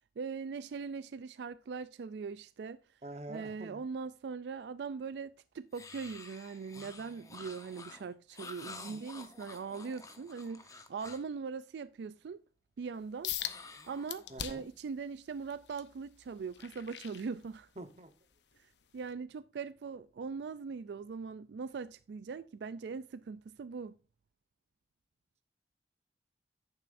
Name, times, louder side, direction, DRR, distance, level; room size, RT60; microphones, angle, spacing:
voice 1, 0.2-3.0 3.3-12.4 12.8-17.7 18.6-24.0, right 5 dB, 75° right, 0.4 m, -41 dB
voice 2, 3.0-3.8 8.9-9.0 14.3-14.7 17.8-18.1, right 1 dB, 40° right, 1.0 m, -46 dB
sound 1, 5.7-11.3 13.4-14.6, left 3 dB, 20° left, 0.9 m, -50 dB
sound 2, 13.2-13.6 14.1-14.8 15.3-17.8 18.3-18.6 19.1-19.2, left 11 dB, 85° left, 0.9 m, -41 dB
11.0 x 8.9 x 2.6 m
head